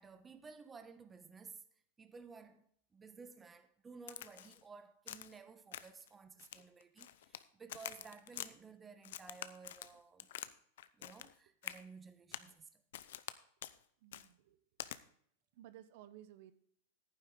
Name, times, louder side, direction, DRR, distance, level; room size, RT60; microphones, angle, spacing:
voice 1, 0.0-1.6 2.0-2.7 2.9-10.3 10.9-12.8, right 5 dB, 15° right, 1.0 m, -55 dB
Crack, 4.1-4.6 5.1-5.4 5.7-6.1 6.4-7.4 7.7-8.5 9.0-10.5 10.8-11.3 11.6-11.8 12.3-12.5 12.9-13.3 13.6-13.8 14.1-14.3 14.8-15.0, left 12 dB, 75° left, 0.7 m, -47 dB
voice 2, 14.0-14.6 15.6-16.5, right 12 dB, 60° right, 0.9 m, -56 dB
11.0 x 9.8 x 3.8 m
supercardioid pair, 135°, 0 cm